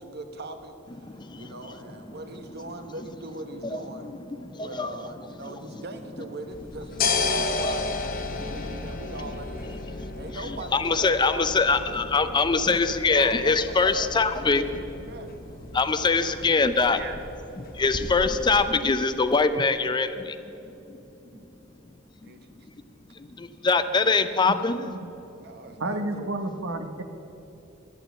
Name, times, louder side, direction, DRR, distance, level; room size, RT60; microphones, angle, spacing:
voice 1, 0.0-4.1 4.6-9.9 10.2-12.0 12.7-12.9 13.1-14.6 14.9-15.3 15.7-15.8 16.3-16.7 16.9-17.2 21.2-21.5 22.2-22.7 25.4-26.3, right 2 dB, 55° right, 7 dB, 1.1 m, -41 dB
voice 2, 1.0-1.5 3.7-4.9 7.6-7.7 8.4-8.9 9.9-14.7 15.7-17.0 17.6-20.4 20.7-21.0 23.2-24.8, left 4 dB, 20° left, 11 dB, 0.4 m, -24 dB
sound 1, 6.5-18.6, left 4 dB, 45° left, 1.0 m, -33 dB
voice 3, 25.8-27.0, right 2 dB, 80° right, 7 dB, 1.0 m, -30 dB
11.5 x 8.7 x 8.0 m, 3.0 s
head